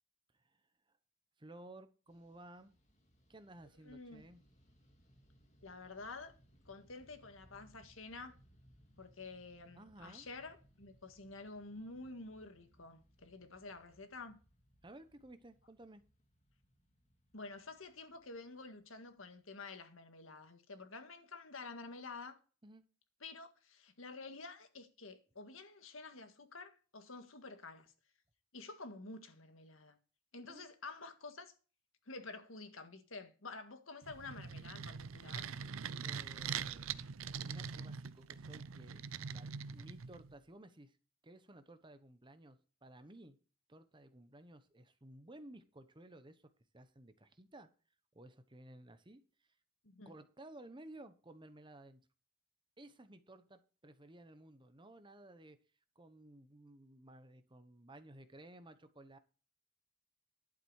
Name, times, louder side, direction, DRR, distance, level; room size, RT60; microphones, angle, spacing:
voice 1, 1.4-2.8 3.3-4.4 9.8-10.3 14.8-16.0 22.6-22.8 30.5-30.7 36.0-37.2 37.4-39.0 39.3-41.0 41.2-43.4 43.7-46.4 46.7-47.7 48.1-49.5 50.0-52.0 52.8-55.6 55.9-59.2, right 1 dB, 25° right, 1.1 m, -56 dB
Fixed-wing aircraft airplane, 2.1-19.5, equal, 35° left, 2.3 m, -68 dB
voice 2, 3.8-4.3 5.6-6.4 6.7-8.3 9.0-14.4 17.3-22.4 23.2-27.9 28.5-30.0 30.3-31.5 32.1-35.5 49.8-50.1, left 3 dB, 85° left, 1.8 m, -50 dB
sound 1, 34.0-40.4, right 6 dB, 85° right, 0.6 m, -43 dB
11.5 x 7.8 x 4.8 m
head